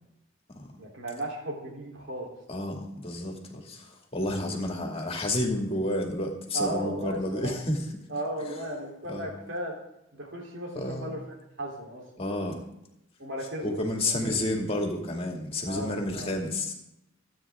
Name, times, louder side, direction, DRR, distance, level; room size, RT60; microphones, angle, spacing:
voice 1, 0.8-2.7 6.5-7.5 8.1-9.8 10.1-11.2 11.6-12.5 13.2-14.2 15.6-16.4, right 1 dB, 65° right, -1 dB, 3.5 m, -36 dB
voice 2, 2.5-7.8 8.5-8.6 9.1-9.3 10.7-11.2 12.2-12.7 13.6-16.7, left 1 dB, 30° left, 1 dB, 2.4 m, -30 dB
27.0 x 9.3 x 3.7 m, 0.84 s
head